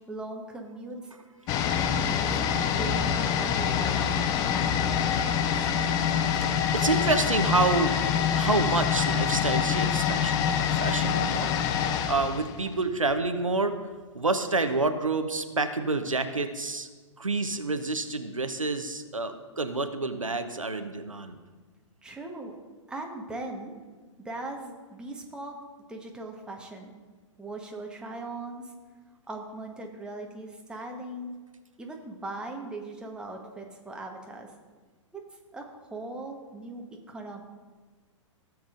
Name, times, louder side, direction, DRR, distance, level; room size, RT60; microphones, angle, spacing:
voice 1, 0.1-1.0 2.0-2.4 2.7-5.7 22.0-22.6 22.9-23.7 24.2-25.5 25.9-26.9 27.4-28.7 29.3-31.3 31.8-34.5 35.1-35.2 35.5-37.4, right 2 dB, 5° right, 0 dB, 1.1 m, -39 dB
voice 2, 1.4-2.0 2.6-2.8 6.4-8.0 8.3-10.4 10.7-11.7 12.1-13.8 14.1-16.9 17.2-21.4, right 3 dB, 90° right, 8 dB, 0.8 m, -28 dB
sound 1, 1.5-13.2 13.5-13.6, left 8 dB, 20° left, 0.4 m, -26 dB
16.0 x 7.4 x 2.5 m, 1.4 s
figure-of-eight pair, 115°, 16 cm